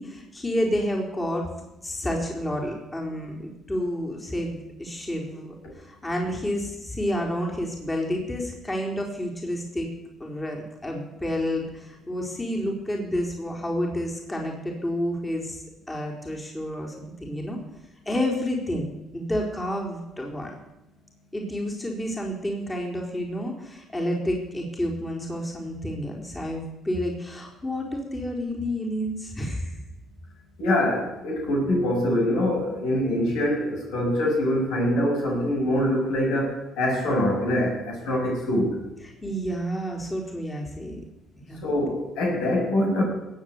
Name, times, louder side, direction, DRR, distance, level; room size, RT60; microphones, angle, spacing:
voice 1, 0.0-1.5 1.8-9.9 10.2-17.6 18.1-20.5 21.3-29.8 39.0-41.0 41.4-41.6, equal, 20° left, 0 dB, 4.2 m, -30 dB
voice 2, 30.6-38.8 41.6-43.0, left 1 dB, 85° left, -1 dB, 6.5 m, -24 dB
19.0 x 8.1 x 8.4 m, 0.97 s
cardioid pair, 90°, 0 cm